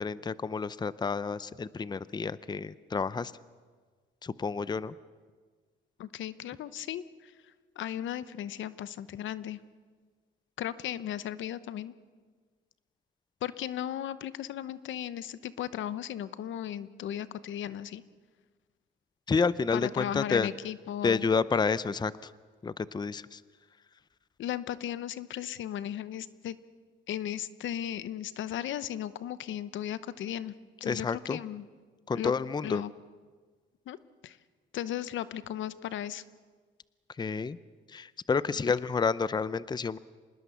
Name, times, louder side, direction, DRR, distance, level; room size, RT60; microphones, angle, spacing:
voice 1, 0.0-3.3 4.2-4.9 19.3-20.5 21.0-22.3 22.6-23.4 30.8-31.4 32.1-32.8 37.2-37.6 37.9-40.0, left 5 dB, 20° left, 17 dB, 0.6 m, -29 dB
voice 2, 6.0-7.3 7.8-9.6 10.6-11.9 13.4-18.0 19.7-21.2 24.4-26.6 27.1-30.5 30.8-31.6 32.1-32.3 32.6-32.9 33.9-34.0 34.2-34.4 34.7-36.2, left 11 dB, 75° left, 15 dB, 0.9 m, -36 dB
26.0 x 20.0 x 6.9 m, 1.5 s
cardioid pair, 90°, 20 cm